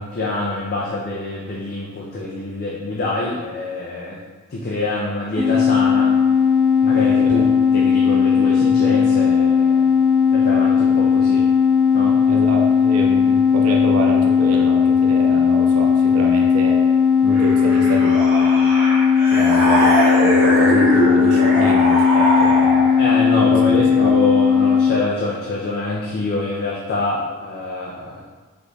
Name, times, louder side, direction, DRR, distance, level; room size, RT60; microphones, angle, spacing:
voice 1, 0.0-4.2 4.5-6.1 6.8-7.5 7.7-9.9 10.3-11.4 11.9-12.2 23.0-28.2, left 2 dB, 45° left, -5 dB, 0.4 m, -25 dB
sound 1, 5.4-24.9, left 6 dB, 60° right, 0.9 m, -16 dB
voice 2, 12.3-16.8 17.2-18.7 19.3-22.9 23.4-24.1, right 2 dB, 75° right, -1 dB, 0.5 m, -27 dB
sound 2, 17.3-23.2, right 1 dB, 10° right, 1.1 m, -21 dB
3.8 x 3.2 x 2.3 m, 1.3 s
head